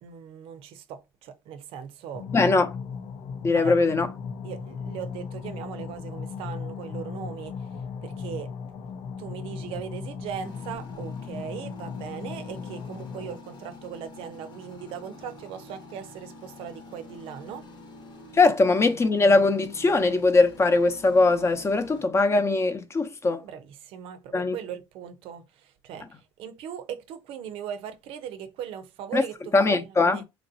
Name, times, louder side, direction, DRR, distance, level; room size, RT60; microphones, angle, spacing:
voice 1, 0.0-2.3 3.5-3.8 4.4-7.6 8.0-8.5 9.2-17.7 21.7-21.8 23.3-26.1 26.4-30.2, right 8 dB, 75° right, 0.6 m, -39 dB
sound 1, 2.1-13.4, left 6 dB, 85° left, 0.5 m, -37 dB
voice 2, 2.3-2.7 3.4-4.1 18.3-23.4 24.3-24.6 29.1-29.2 29.5-30.2, left 3 dB, 30° left, 0.6 m, -21 dB
sound 2, 10.4-22.0, left 2 dB, 55° left, 0.9 m, -47 dB
3.0 x 2.6 x 2.7 m
supercardioid pair, 90°, 9 cm